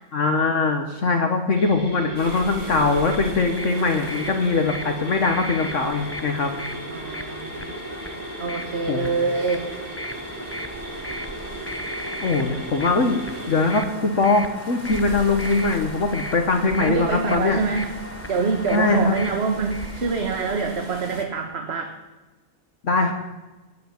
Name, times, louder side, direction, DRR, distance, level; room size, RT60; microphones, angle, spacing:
voice 1, 0.1-6.5 8.9-9.1 12.2-13.2 13.5-17.6 18.7-19.1 22.8-23.1, left 3 dB, 55° left, 4 dB, 1.6 m, -21 dB
sound 1, 1.6-13.8, right 2 dB, 65° right, 4.2 m, -37 dB
sound 2, 2.1-21.2, right 2 dB, 30° right, 1.6 m, -40 dB
sound 3, 2.9-20.0, left 1 dB, 15° left, 0.4 m, -37 dB
voice 2, 6.9-7.8 8.4-9.7 16.8-17.9 18.3-21.9, right 4 dB, 45° right, 4 dB, 1.4 m, -25 dB
19.5 x 8.7 x 7.1 m, 1.1 s
omnidirectional pair, 1.5 m